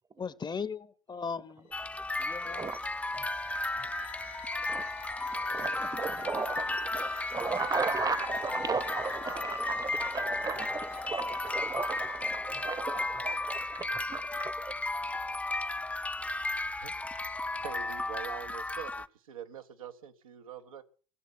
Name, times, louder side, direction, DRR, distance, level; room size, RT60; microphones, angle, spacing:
voice 1, 0.2-1.7 2.2-2.7, left 5 dB, 25° left, 1.0 m, -38 dB
sound 1, 1.7-12.4, left 9 dB, 45° left, 1.3 m, -51 dB
sound 2, 1.7-19.1, left 2 dB, 10° left, 0.7 m, -34 dB
voice 2, 2.5-2.8 4.7-4.9 5.3-14.7, right 5 dB, 20° right, 1.0 m, -36 dB
voice 3, 16.8-17.3 17.5-20.8, right 9 dB, 80° right, 1.2 m, -45 dB
17.0 x 7.2 x 8.3 m
hypercardioid pair, 65°, 17 cm